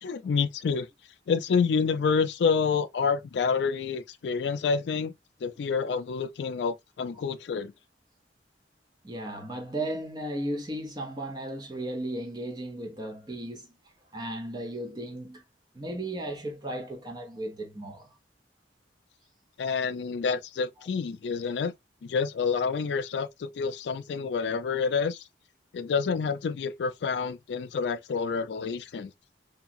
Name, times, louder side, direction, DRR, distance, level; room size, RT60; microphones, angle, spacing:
voice 1, 0.0-0.9 1.3-5.1 5.4-7.7 19.6-21.7 22.0-25.2 25.7-29.1, left 5 dB, 65° left, 0.3 m, -28 dB
voice 2, 9.0-13.8 14.1-15.4 15.7-18.1, right 1 dB, 25° right, 0.7 m, -35 dB
2.9 x 2.3 x 2.5 m
head